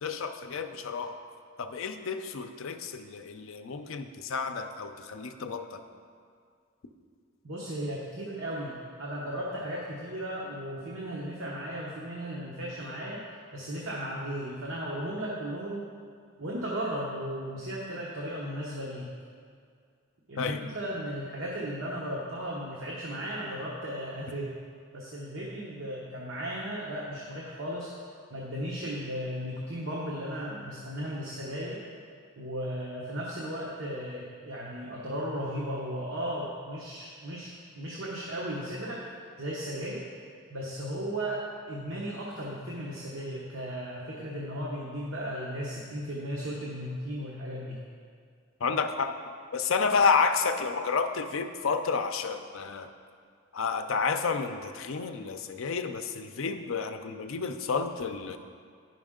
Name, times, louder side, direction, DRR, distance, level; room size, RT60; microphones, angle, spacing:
voice 1, 0.0-1.2 1.6-5.8 20.4-20.7 48.6-49.2 49.5-52.9 53.5-58.4, left 5 dB, 70° left, 7 dB, 0.5 m, -30 dB
voice 2, 7.4-13.2 13.5-15.9 16.4-19.1 20.3-24.6 24.9-27.9 28.3-31.8 32.4-37.5 37.8-39.0 39.4-40.0 40.5-47.8, equal, 70° right, -5 dB, 1.0 m, -35 dB
9.6 x 5.8 x 3.7 m, 2.2 s
head